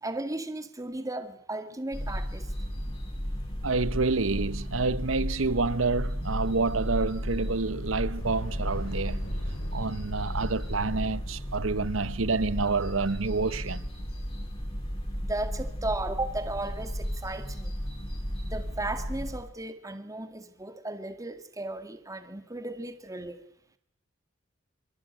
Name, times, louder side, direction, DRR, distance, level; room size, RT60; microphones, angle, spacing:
voice 1, 0.0-2.5 15.2-17.7 18.4-23.4, right 2 dB, 15° right, 2.0 m, -35 dB
sound 1, 1.9-19.4, equal, 30° left, 7.0 m, -34 dB
voice 2, 3.6-9.2 9.7-13.9, right 3 dB, 75° right, 1.0 m, -28 dB
Thunder / Explosion, 8.1-16.3, equal, 75° left, 7.2 m, -43 dB
26.0 x 24.0 x 9.0 m
head